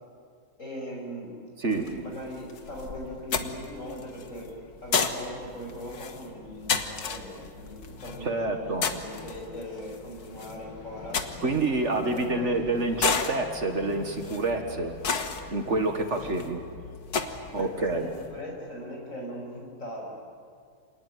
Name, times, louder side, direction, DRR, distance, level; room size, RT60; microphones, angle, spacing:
voice 1, 0.6-1.3 1.7-4.5 4.8-11.2 11.7-13.2 16.2-16.4 17.6-20.1, equal, 55° left, -1 dB, 6.7 m, -40 dB
sound 1, 1.7-18.4, left 5 dB, 85° left, 1.9 m, -34 dB
voice 2, 8.2-8.9 11.4-15.0 15.5-16.6 17.5-18.1, right 2 dB, 50° right, 5 dB, 1.9 m, -27 dB
27.0 x 19.0 x 9.2 m, 2.2 s
omnidirectional pair, 1.6 m